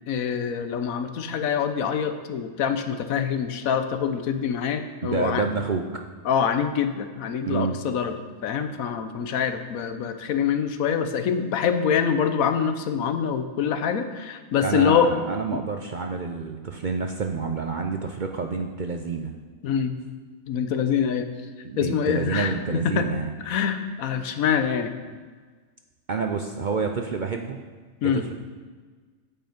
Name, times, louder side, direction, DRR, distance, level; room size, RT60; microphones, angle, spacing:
voice 1, 0.1-5.5 6.2-8.1 8.4-15.1 15.5-15.6 19.6-20.0 20.5-21.3 21.8-22.5 22.8-23.1 23.4-24.9 28.0-28.2, left 7 dB, 90° left, 8 dB, 1.2 m, -25 dB
voice 2, 5.0-5.8 7.4-7.8 14.6-19.3 21.6-23.3 26.1-27.6 28.1-28.3, right 5 dB, 55° right, 4 dB, 0.5 m, -28 dB
9.0 x 7.8 x 5.1 m, 1.5 s
omnidirectional pair, 1.4 m